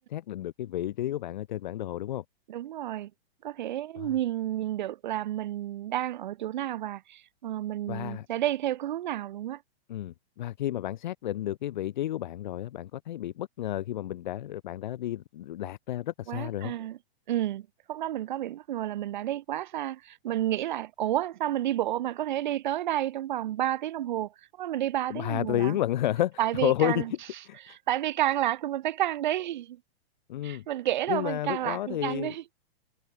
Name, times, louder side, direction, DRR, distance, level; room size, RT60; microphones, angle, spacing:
voice 1, 0.0-2.2 4.0-4.1 7.9-8.3 9.9-16.7 25.1-27.1 27.4-27.8 30.3-30.6 31.1-32.3, left 13 dB, 45° left, 4.1 m, -31 dB
voice 2, 2.5-3.1 3.4-9.6 16.3-17.0 17.3-25.8 26.4-27.1 27.7-29.8 30.4-32.4, right 12 dB, 45° right, 6.2 m, -30 dB
hypercardioid pair, 175°, 31 cm